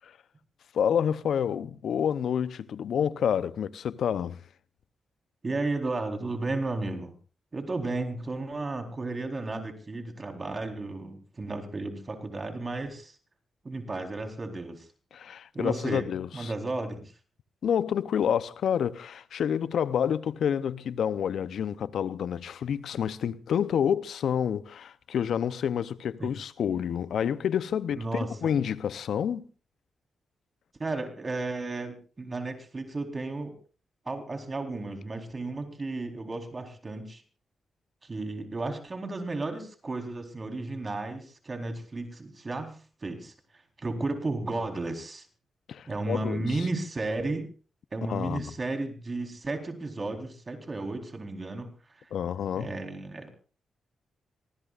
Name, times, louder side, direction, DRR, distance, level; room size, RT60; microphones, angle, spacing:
voice 1, 0.7-4.4 15.1-16.5 17.6-28.1 28.4-29.5 45.7-46.5 48.1-48.5 52.1-52.7, left 8 dB, 70° left, 0.7 m, -28 dB
voice 2, 5.4-7.1 7.5-13.2 13.6-14.9 15.5-16.1 16.3-17.1 26.2-26.3 27.9-28.3 30.8-33.5 34.0-37.2 38.0-45.3 45.9-47.5 47.9-52.1 52.5-53.3, right 2 dB, 35° right, 4.2 m, -33 dB
27.0 x 20.0 x 2.5 m
supercardioid pair, 50°, 0 cm